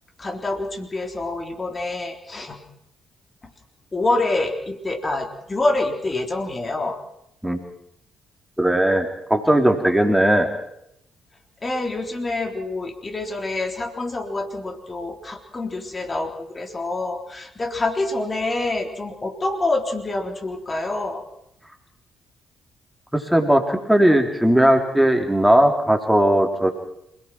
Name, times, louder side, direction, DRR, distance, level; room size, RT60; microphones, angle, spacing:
voice 1, 0.2-2.6 3.9-7.0 11.6-21.2, left 2 dB, 30° left, 4 dB, 3.8 m, -26 dB
voice 2, 8.6-10.5 23.1-26.7, right 1 dB, 5° right, 4 dB, 3.5 m, -18 dB
27.0 x 18.0 x 6.2 m, 0.77 s
hypercardioid pair, 45°, 0 cm